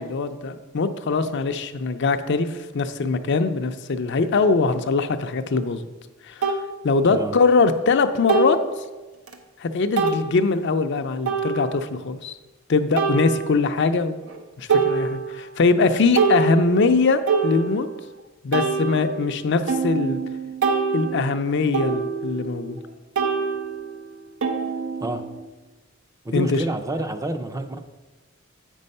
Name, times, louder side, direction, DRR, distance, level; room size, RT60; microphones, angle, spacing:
voice 1, 0.0-5.9 6.3-6.5 6.8-8.6 9.6-12.4 12.7-14.2 14.6-17.9 18.4-20.2 20.9-22.8 26.3-26.6, left 4 dB, 60° left, 9 dB, 0.5 m, -22 dB
sound 1, 5.6-5.7 6.4-6.6 8.3-8.7 9.3-9.4 10.0-10.2 11.3-11.9 13.0-13.8 14.3-14.4 14.7-15.5 15.9-18.1 18.5-22.9 23.2-25.5, right 5 dB, 90° right, 0.9 m, -25 dB
voice 2, 25.0-25.3 26.2-27.8, right 1 dB, 15° right, 7 dB, 0.5 m, -28 dB
8.1 x 5.4 x 5.4 m, 1.2 s
head